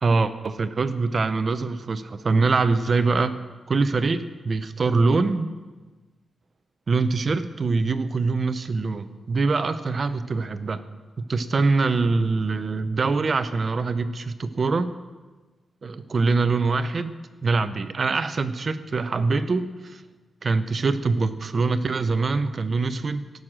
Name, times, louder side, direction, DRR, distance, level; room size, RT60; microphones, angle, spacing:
voice 1, 0.0-3.3 3.7-5.5 6.9-10.8 11.2-14.9 15.8-17.2 17.4-20.0 20.4-23.3, right 3 dB, 40° right, 11 dB, 0.7 m, -24 dB
17.0 x 6.4 x 7.5 m, 1.3 s
wide cardioid pair, 135°, 0 cm